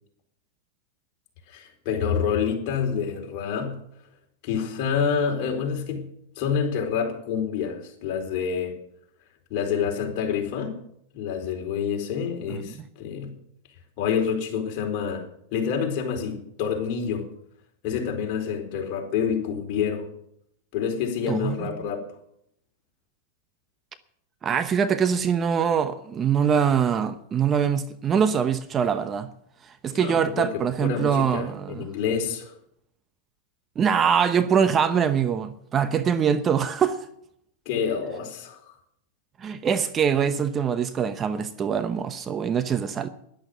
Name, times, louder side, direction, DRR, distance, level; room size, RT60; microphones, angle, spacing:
voice 1, 1.5-3.8 4.4-6.1 6.4-8.7 9.5-10.8 11.1-13.4 14.0-15.2 15.5-17.2 17.8-20.0 20.7-22.0 29.9-32.5 37.7-38.6, left 7 dB, 50° left, 4.3 m, -27 dB
voice 2, 24.4-29.3 29.8-31.9 33.8-37.0 39.4-43.1, right 7 dB, 25° right, 0.9 m, -23 dB
12.5 x 11.5 x 6.7 m
hypercardioid pair, 125°, 0 cm